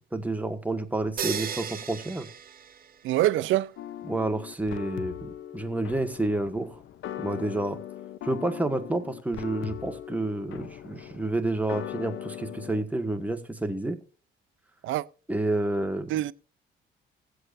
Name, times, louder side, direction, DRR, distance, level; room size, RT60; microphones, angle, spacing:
voice 1, 0.1-2.3 4.1-6.8 7.2-7.8 8.2-14.0 15.3-16.2, right 2 dB, 5° right, 1.6 m, -29 dB
sound 1, 1.2-3.3, right 7 dB, 45° right, 1.6 m, -35 dB
voice 2, 3.0-3.7 14.8-15.0 16.1-16.3, right 14 dB, 80° right, 0.5 m, -24 dB
sound 2, 3.8-12.8, left 11 dB, 75° left, 0.7 m, -40 dB
19.5 x 7.9 x 2.6 m
cardioid pair, 90°, 20 cm